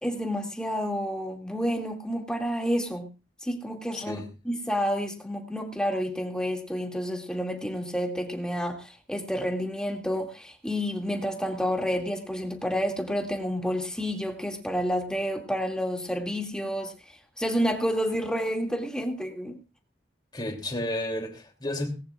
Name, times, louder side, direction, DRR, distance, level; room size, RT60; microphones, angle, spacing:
voice 1, 0.0-3.1 3.4-19.6, equal, 5° left, 2.4 m, -29 dB
voice 2, 3.9-4.3 20.3-21.9, left 1 dB, 25° left, 3.0 m, -32 dB
19.0 x 17.5 x 2.5 m
head